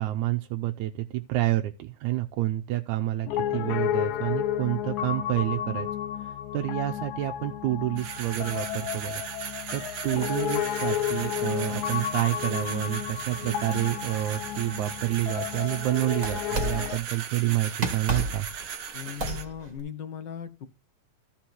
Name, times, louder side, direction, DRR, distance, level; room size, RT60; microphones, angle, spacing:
voice 1, 0.0-5.9 6.2-9.3 9.7-18.5, right 15 dB, 85° right, 2.1 m, -29 dB
Piano, 3.3-17.0, left 11 dB, 80° left, 2.2 m, -32 dB
sound 1, 8.0-19.4, right 7 dB, 55° right, 1.7 m, -38 dB
sound 2, 13.6-15.7 16.1-17.2 17.6-19.8, right 3 dB, 30° right, 2.0 m, -35 dB
voice 2, 18.9-20.7, left 8 dB, 55° left, 1.4 m, -38 dB
13.5 x 5.3 x 4.5 m
omnidirectional pair, 3.3 m